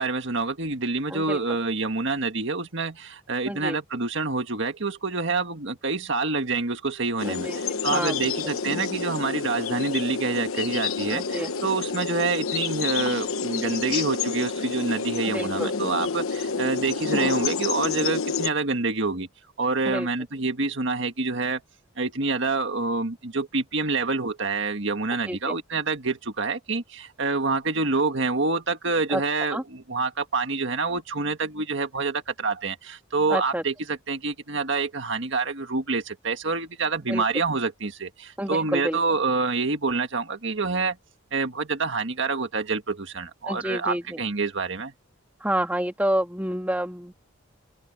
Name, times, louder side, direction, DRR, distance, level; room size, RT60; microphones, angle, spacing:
voice 1, 0.0-19.3 19.6-21.6 22.0-41.0 41.3-44.9, right 3 dB, 60° right, 1.8 m, -27 dB
voice 2, 3.5-3.8 7.2-7.6 7.9-8.3 11.1-11.5 15.2-15.7 19.9-20.1 25.3-25.6 29.1-29.2 29.5-29.6 33.3-33.6 37.1-37.2 38.4-39.0 43.5-44.2 45.4-47.1, right 1 dB, 5° right, 2.0 m, -28 dB
sound 1, 7.2-18.5, left 5 dB, 75° left, 1.1 m, -29 dB
head